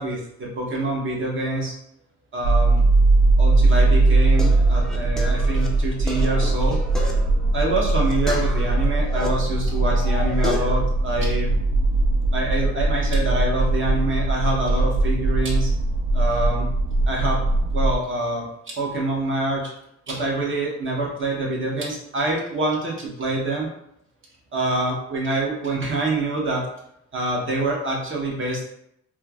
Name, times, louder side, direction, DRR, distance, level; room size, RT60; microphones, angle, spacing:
voice 1, 0.0-1.7 2.3-2.8 3.4-6.8 7.5-11.5 12.3-15.7 16.1-16.7 17.1-17.4 17.7-19.7 20.1-23.7 24.5-26.6 27.1-28.6, right 2 dB, 40° right, -1 dB, 0.8 m, -26 dB
sound 1, 2.4-18.0, right 2 dB, 65° right, 0.5 m, -20 dB
sound 2, 3.9-9.3 9.7-10.8, left 1 dB, ahead, 0.4 m, -34 dB
3.0 x 2.2 x 2.3 m, 0.75 s
cardioid pair, 90°, 30 cm